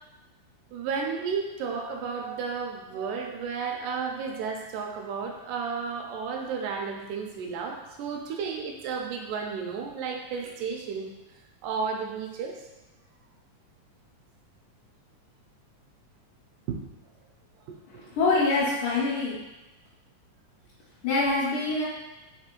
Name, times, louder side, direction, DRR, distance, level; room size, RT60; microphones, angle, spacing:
voice 1, 0.7-11.1 11.6-12.5 17.7-17.8, right 5 dB, 85° right, 2 dB, 2.1 m, -33 dB
voice 2, 18.2-19.4 21.0-21.8, left 3 dB, 80° left, -8 dB, 2.4 m, -24 dB
5.4 x 3.3 x 3.0 m, 1.0 s
omnidirectional pair, 3.7 m